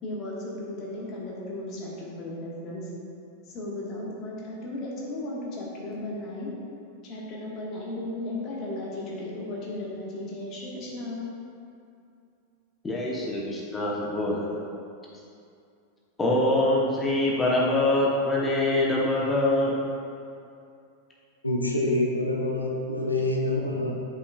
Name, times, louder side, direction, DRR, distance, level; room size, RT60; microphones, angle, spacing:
voice 1, 0.0-2.9 3.5-6.5 7.0-11.3, left 1 dB, 35° left, -4 dB, 1.5 m, -35 dB
voice 2, 12.8-14.6 16.2-19.7, left 1 dB, 15° left, -4 dB, 0.9 m, -24 dB
voice 3, 21.4-23.9, left 2 dB, 85° left, -1 dB, 0.8 m, -26 dB
8.3 x 5.4 x 2.4 m, 2.5 s
figure-of-eight pair, 90°, 0 cm